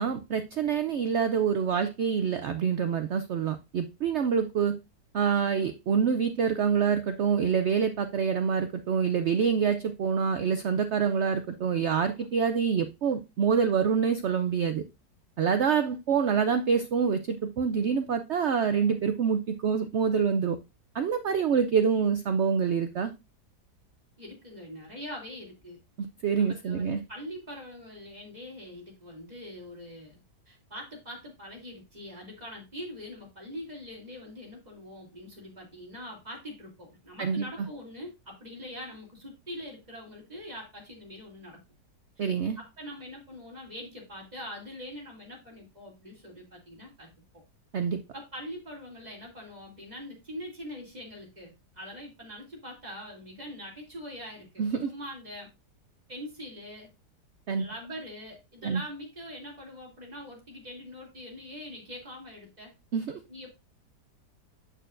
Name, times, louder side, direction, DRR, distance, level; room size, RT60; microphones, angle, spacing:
voice 1, 0.0-4.7 5.1-14.8 15.4-20.6 20.9-23.1 26.0-27.0 37.2-37.5 42.2-42.6 47.7-48.0 54.6-54.9 57.5-57.6 58.6-58.8 62.9-63.2, right 6 dB, 75° right, 9 dB, 0.6 m, -26 dB
voice 2, 24.2-25.8 26.3-30.2 30.5-41.6 42.2-47.1 48.1-55.5 56.1-56.9 57.6-62.7 63.3-63.6, equal, 25° right, -2 dB, 2.9 m, -43 dB
7.9 x 6.7 x 2.5 m, 0.24 s
omnidirectional pair, 1.8 m